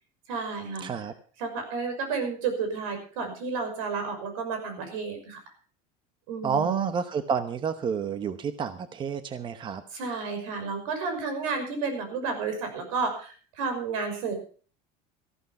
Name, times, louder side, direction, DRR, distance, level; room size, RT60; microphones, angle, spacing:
voice 1, 0.3-0.9 1.4-5.4 6.3-7.0 9.9-14.3, right 4 dB, 85° right, 6 dB, 5.8 m, -31 dB
voice 2, 0.8-1.1 6.4-9.8, right 6 dB, 30° right, 11 dB, 1.0 m, -29 dB
14.0 x 12.5 x 5.4 m, 0.41 s
cardioid pair, 135°, 17 cm